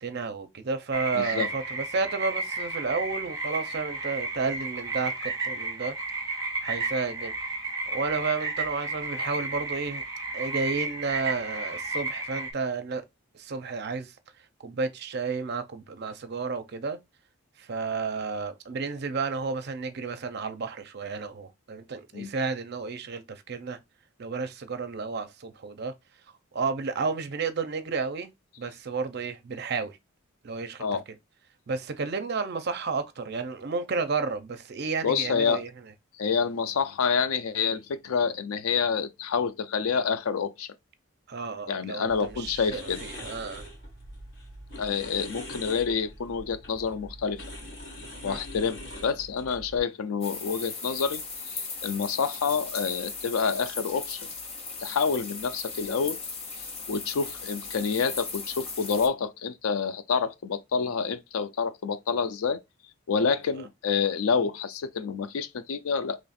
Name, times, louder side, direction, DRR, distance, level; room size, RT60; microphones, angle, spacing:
voice 1, 0.0-6.0 6.6-7.3 7.9-10.0 10.3-13.0 13.3-17.0 17.6-23.8 24.2-25.9 26.5-28.3 28.6-30.0 30.4-31.0 31.7-35.7 41.3-43.7 48.2-48.4 63.6-63.7, right 4 dB, 50° right, 0.5 m, -32 dB
sound 1, 0.9-12.5, right 3 dB, 15° right, 0.8 m, -33 dB
voice 2, 1.2-1.5 22.1-22.3 30.8-31.0 35.0-35.6 36.2-40.7 41.7-43.0 44.8-47.4 48.2-54.2 54.8-56.2 56.9-62.6 63.1-66.2, left 6 dB, 80° left, 0.4 m, -28 dB
sound 2, 42.1-49.8, equal, 60° left, 1.7 m, -43 dB
sound 3, 50.2-59.1, left 4 dB, 30° left, 0.6 m, -37 dB
3.0 x 2.4 x 4.1 m
head